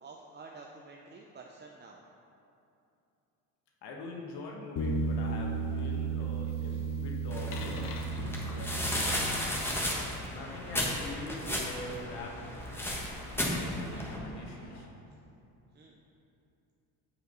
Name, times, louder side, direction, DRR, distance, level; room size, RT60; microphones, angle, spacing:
voice 1, 0.0-2.0 6.7-6.8 15.7-16.0, right 3 dB, 25° right, 0 dB, 0.6 m, -50 dB
voice 2, 3.8-7.9 8.4-9.3 10.3-12.6 13.3-14.9, left 2 dB, 65° left, 0 dB, 1.4 m, -43 dB
sound 1, 4.8-9.7, right 4 dB, 50° left, 1.0 m, -33 dB
sound 2, 7.3-14.2, left 1 dB, 5° left, 1.4 m, -34 dB
sound 3, 10.0-14.8, left 1 dB, 20° left, 1.8 m, -51 dB
6.4 x 4.9 x 5.5 m, 2.7 s
supercardioid pair, 80°, 43 cm